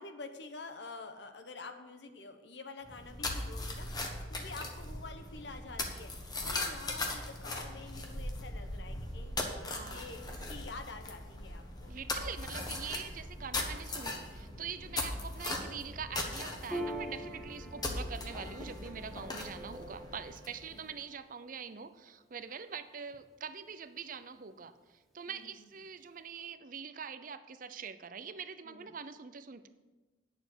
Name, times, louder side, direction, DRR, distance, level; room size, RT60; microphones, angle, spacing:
voice 1, 0.0-3.9 4.3-11.9 14.9-15.0 17.6-18.0 20.7-20.8 25.3-25.5 28.6-28.9, left 3 dB, 70° left, 7 dB, 1.0 m, -48 dB
sound 1, 2.9-20.8, left 2 dB, 20° left, 1.2 m, -39 dB
voice 2, 9.7-10.2 11.9-29.7, right 6 dB, 45° right, 12 dB, 0.6 m, -44 dB
Piano, 16.7-23.6, right 1 dB, ahead, 1.8 m, -46 dB
9.9 x 7.0 x 6.2 m, 1.2 s
head